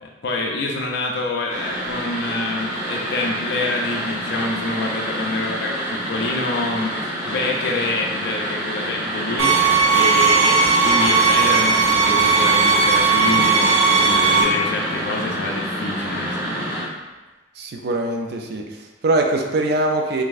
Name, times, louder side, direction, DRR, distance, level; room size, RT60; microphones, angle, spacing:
voice 1, 0.0-16.8, left 2 dB, 55° left, -1 dB, 0.4 m, -26 dB
sound 1, 1.5-16.8, equal, 15° right, 0.7 m, -28 dB
sound 2, 9.4-14.4, right 5 dB, 80° right, 0.7 m, -17 dB
voice 2, 17.6-20.2, right 2 dB, 50° right, 2 dB, 0.4 m, -22 dB
3.9 x 2.6 x 2.5 m, 1.2 s
head